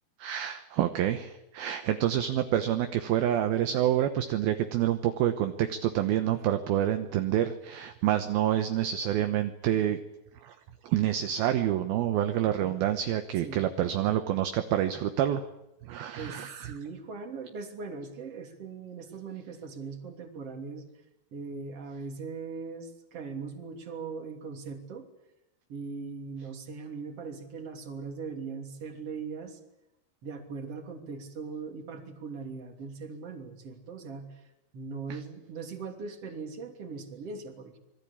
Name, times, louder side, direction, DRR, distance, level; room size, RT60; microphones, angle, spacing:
voice 1, 0.2-10.0 10.4-10.6 10.8-15.5 15.8-16.7, right 11 dB, 70° right, 8 dB, 2.7 m, -27 dB
voice 2, 16.2-20.9 21.3-25.1 25.7-29.6 30.2-37.8, right 4 dB, 40° right, 5 dB, 3.6 m, -40 dB
27.0 x 20.0 x 8.7 m, 0.90 s
omnidirectional pair, 4.9 m